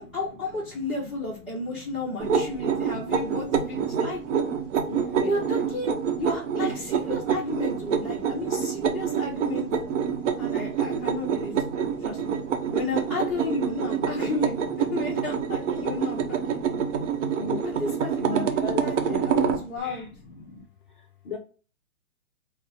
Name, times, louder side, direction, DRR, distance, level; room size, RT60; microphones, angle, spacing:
voice 1, 0.0-4.2 5.2-5.9 6.2-9.7 10.4-12.4 12.7-16.6 17.6-20.1, left 2 dB, ahead, -9 dB, 0.6 m, -33 dB
voice 2, 1.7-2.2 3.1-3.2 3.7-4.0 4.9-5.4 6.8-6.9 7.8-8.9 9.9-10.5 10.9-11.1 11.4-12.8 14.0-14.3 15.8-16.0 16.5-17.8 18.2-20.6 21.2-21.4, left 4 dB, 40° left, 3 dB, 0.5 m, -39 dB
sound 1, 2.2-19.6, right 7 dB, 55° right, 0.8 m, -27 dB
4.0 x 2.1 x 3.9 m, 0.37 s
hypercardioid pair, 155°, 43 cm